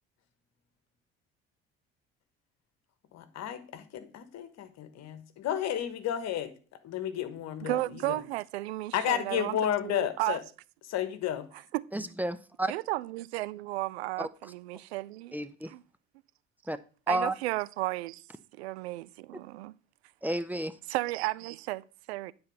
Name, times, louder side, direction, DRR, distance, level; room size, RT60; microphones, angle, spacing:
voice 1, 3.1-6.5 6.8-7.8 8.1-8.2 8.9-10.4 10.8-11.5, left 10 dB, 55° left, 1.4 m, -32 dB
voice 2, 7.6-9.6 9.8-10.4 11.7-11.8 12.7-15.4 15.7-15.8 17.1-18.2 18.6-19.7 20.9-22.3, right 18 dB, 85° right, 0.5 m, -33 dB
voice 3, 11.9-12.7 14.2-14.3 15.3-15.7 16.7-16.8 17.1-17.3 20.2-20.7, right 1 dB, 5° right, 0.8 m, -31 dB
9.5 x 4.4 x 6.6 m
hypercardioid pair, 60°, 31 cm